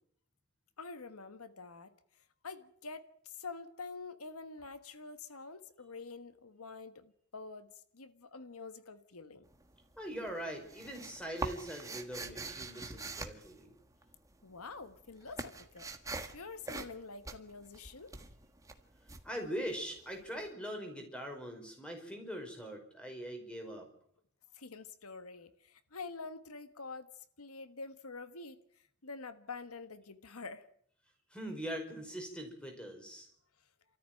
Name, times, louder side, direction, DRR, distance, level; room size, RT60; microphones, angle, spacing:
voice 1, 0.8-1.9 2.4-9.5 14.4-15.9 16.3-18.2 24.5-30.7, left 4 dB, 85° left, 1.5 m, -47 dB
sound 1, 9.4-10.0 10.3-14.3 14.6-20.2, right 3 dB, 15° right, 1.5 m, -43 dB
voice 2, 10.0-13.7 19.2-23.9 31.3-33.3, equal, 5° left, 4.9 m, -42 dB
29.5 x 14.0 x 9.1 m
head